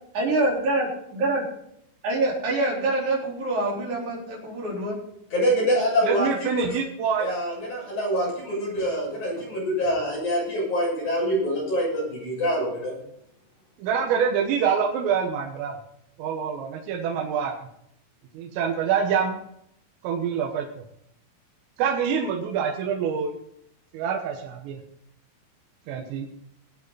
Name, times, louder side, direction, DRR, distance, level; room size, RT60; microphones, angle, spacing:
voice 1, 0.1-1.4 2.0-5.0, right 2 dB, 40° right, -4 dB, 5.1 m, -25 dB
voice 2, 5.3-6.8 7.2-12.9, equal, 35° left, -4 dB, 7.8 m, -25 dB
voice 3, 6.0-7.3 13.8-15.7 16.2-17.7 18.4-19.4 20.0-20.7 21.8-23.4 23.9-24.8 25.9-26.3, right 7 dB, 85° right, 0 dB, 3.9 m, -26 dB
20.0 x 8.6 x 4.1 m, 0.74 s
omnidirectional pair, 5.7 m